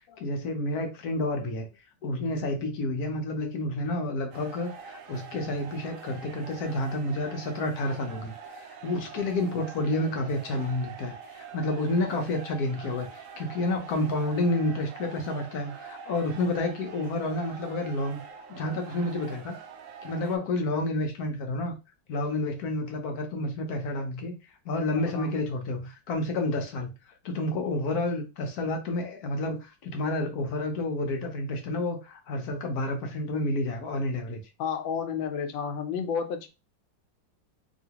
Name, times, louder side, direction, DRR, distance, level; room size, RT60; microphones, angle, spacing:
voice 1, 0.2-18.2 18.5-19.6 20.0-21.7 22.1-24.3 24.6-26.9 27.2-34.4, left 2 dB, 65° left, 1.0 m, -30 dB
sound 1, 4.3-20.4, right 6 dB, 85° right, 0.7 m, -45 dB
voice 2, 25.0-25.3 34.6-36.5, left 7 dB, 90° left, 1.4 m, -32 dB
3.0 x 2.8 x 2.8 m
omnidirectional pair, 2.0 m